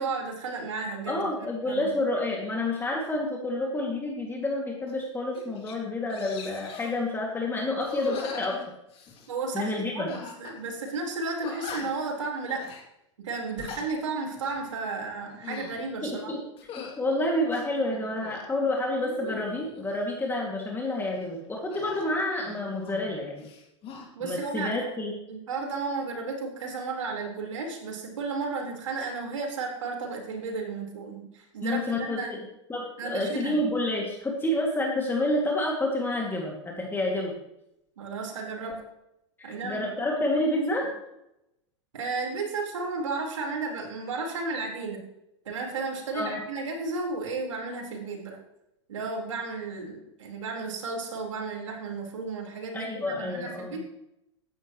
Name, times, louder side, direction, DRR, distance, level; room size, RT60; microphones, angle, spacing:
voice 1, 0.0-1.3 1.6-1.9 9.3-12.7 13.2-16.3 24.1-24.9 25.3-32.3 33.0-33.6 38.0-38.8 39.4-40.4 41.9-45.0 45.4-48.4 48.9-53.8, right 4 dB, 85° right, 0 dB, 4.5 m, -33 dB
voice 2, 1.1-8.6 9.5-10.1 16.0-16.4 16.8-23.5 24.2-25.1 31.6-32.4 32.7-37.3 39.4-40.9 46.1-46.3 52.7-53.8, left 1 dB, 15° left, -1 dB, 2.5 m, -29 dB
sound 1, 4.9-5.0 5.3-5.8 6.1-7.0 7.8-9.3 10.1-10.6 10.9-11.0 11.4-12.1 12.5-12.8 13.4-13.9 14.3-14.6 15.2-15.8 16.6-17.0 17.5-18.5 19.0-19.9 21.7-23.1 23.4-24.1, left 6 dB, 35° left, 2.9 m, -40 dB
15.5 x 11.0 x 3.2 m, 0.86 s
hypercardioid pair, 110°, 16 cm